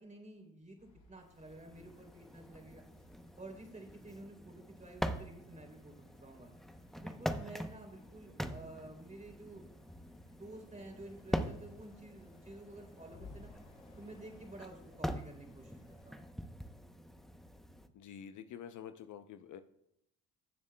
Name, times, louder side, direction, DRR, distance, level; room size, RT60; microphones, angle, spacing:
voice 1, 0.0-2.8 3.4-6.5 6.9-9.6 10.3-13.5 14.0-16.2, right 2 dB, 20° right, 2 dB, 3.1 m, -51 dB
sound 1, 0.8-16.1, left 3 dB, 75° left, 4.0 m, -62 dB
sound 2, 1.3-17.9, equal, ahead, 0.7 m, -44 dB
voice 2, 17.9-19.6, left 9 dB, 55° left, 10 dB, 0.6 m, -48 dB
16.5 x 7.2 x 2.2 m, 0.77 s
supercardioid pair, 70°, 36 cm